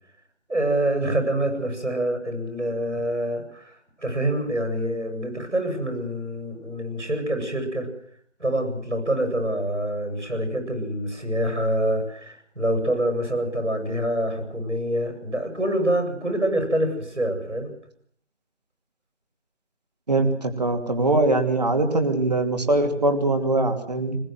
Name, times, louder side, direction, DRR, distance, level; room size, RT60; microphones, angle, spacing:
voice 1, 0.5-7.9 8.4-17.7, right 1 dB, 85° right, 6 dB, 7.9 m, -26 dB
voice 2, 20.1-24.2, right 2 dB, 35° right, 6 dB, 2.8 m, -22 dB
21.0 x 20.5 x 8.0 m, 0.63 s
figure-of-eight pair, 170°, 35 cm